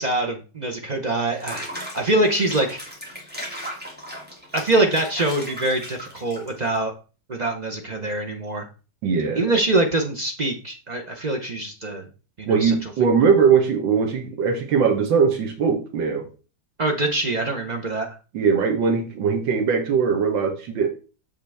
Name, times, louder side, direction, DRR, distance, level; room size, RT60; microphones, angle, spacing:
voice 1, 0.0-2.8 4.5-6.9 7.3-8.7 9.3-12.1 12.4-12.9 16.8-18.2, right 2 dB, 60° right, 2 dB, 0.4 m, -24 dB
Water / Bathtub (filling or washing), 1.3-6.8, equal, 5° right, 2.2 m, -37 dB
voice 2, 9.0-9.4 12.5-16.3 18.3-20.9, right 6 dB, 80° right, 5 dB, 1.7 m, -20 dB
6.9 x 5.7 x 3.4 m, 0.34 s
omnidirectional pair, 2.0 m